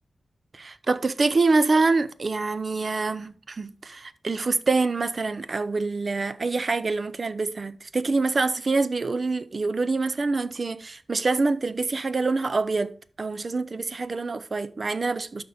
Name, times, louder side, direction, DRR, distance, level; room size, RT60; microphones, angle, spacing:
voice 1, 0.5-15.4, right 3 dB, 45° right, 0.5 m, -25 dB
12.5 x 4.1 x 3.3 m
wide cardioid pair, 120°, 0 cm